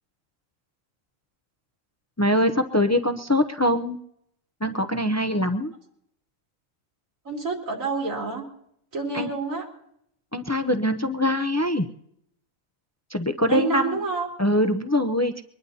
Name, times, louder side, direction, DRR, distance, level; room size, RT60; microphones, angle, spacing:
voice 1, 2.2-4.0 4.6-5.7 9.1-9.3 10.3-11.9 13.1-14.0 14.4-15.3, left 1 dB, 25° left, 8 dB, 0.3 m, -23 dB
voice 2, 7.2-8.4 8.9-9.7 13.4-14.3, right 4 dB, 80° right, 0 dB, 3.3 m, -28 dB
23.0 x 20.0 x 2.8 m, 0.73 s
omnidirectional pair, 1.4 m